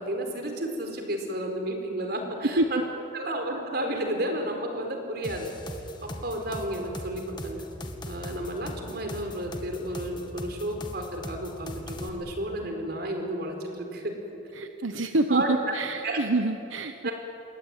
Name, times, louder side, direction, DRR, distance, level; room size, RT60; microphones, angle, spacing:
voice 1, 0.0-2.8 3.1-5.5 6.0-7.6 8.0-14.1 15.3-15.6 16.0-16.2 17.0-17.1, right 1 dB, 55° right, 4 dB, 4.6 m, -32 dB
sound 1, 5.2-12.1, left 1 dB, 25° left, 2.1 m, -38 dB
voice 2, 14.5-17.1, right 2 dB, 85° right, 7 dB, 1.1 m, -27 dB
27.5 x 22.5 x 9.2 m, 2.9 s
head